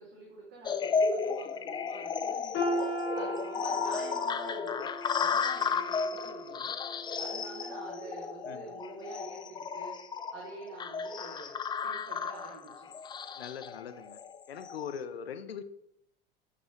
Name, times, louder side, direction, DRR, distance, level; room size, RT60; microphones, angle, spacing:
voice 1, 0.0-2.8 3.1-4.9 5.2-6.7 7.2-9.4 9.7-10.0 10.3-11.5 11.8-12.9, right 3 dB, 55° right, -3 dB, 2.3 m, -46 dB
sound 1, 0.7-14.9, left 5 dB, 15° left, 0.4 m, -34 dB
sound 2, 2.5-8.5 8.9-9.1 9.9-10.0, equal, 40° left, 1.5 m, -38 dB
voice 2, 8.4-8.8 13.3-14.2 14.5-15.6, left 7 dB, 80° left, 11 dB, 0.7 m, -41 dB
8.3 x 5.5 x 3.0 m, 0.75 s
figure-of-eight pair, 80°, 30 cm